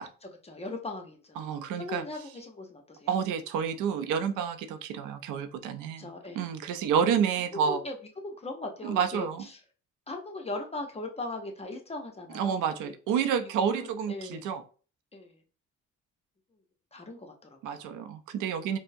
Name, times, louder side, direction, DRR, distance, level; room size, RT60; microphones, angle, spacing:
voice 1, 0.2-1.5 1.8-3.2 6.0-6.5 7.6-8.0 8.2-9.6 10.1-12.9 13.4-14.5 15.1-15.3 16.9-17.8, left 2 dB, 20° left, 3 dB, 0.7 m, -39 dB
voice 2, 1.4-2.0 3.1-6.1 6.3-7.8 8.8-9.4 12.3-14.6 17.6-18.8, right 7 dB, 90° right, 8 dB, 0.5 m, -29 dB
4.3 x 2.1 x 2.6 m, 0.39 s
cardioid pair, 90°, 30 cm